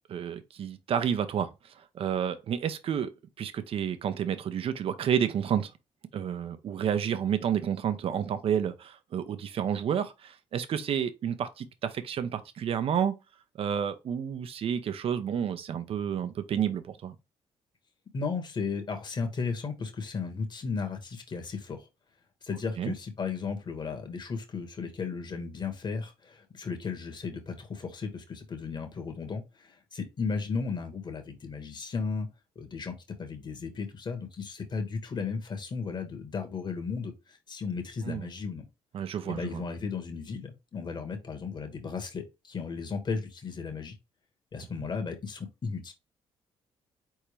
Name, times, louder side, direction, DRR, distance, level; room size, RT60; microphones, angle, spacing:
voice 1, 0.1-3.1 3.4-5.7 6.1-13.1 13.6-17.1 22.8-22.9 38.0-38.3 38.9-39.6, right 8 dB, 60° right, 0.8 m, -30 dB
voice 2, 18.1-21.9 22.4-32.3 32.5-38.6 39.3-43.9 44.5-45.9, left 5 dB, 40° left, 1.5 m, -35 dB
4.2 x 3.6 x 3.2 m
cardioid pair, 90°, 11 cm